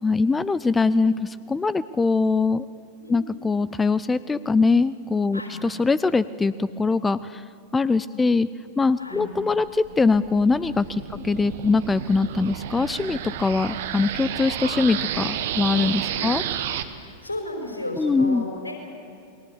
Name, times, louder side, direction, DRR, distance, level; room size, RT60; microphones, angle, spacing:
voice 1, 0.0-2.7 3.1-7.4 7.7-8.5 8.8-16.4 18.0-18.4, left 4 dB, 10° left, 17 dB, 0.5 m, -22 dB
voice 2, 2.9-3.3 5.3-5.5 8.1-8.2 9.0-9.2 11.1-11.2 14.6-14.8 16.2-16.3 16.9-18.9, left 2 dB, 80° left, 2 dB, 5.1 m, -34 dB
sound 1, 9.5-16.8, right 11 dB, 55° right, 1.3 m, -31 dB
29.0 x 21.5 x 7.0 m, 2.5 s
figure-of-eight pair, 90°, 0 cm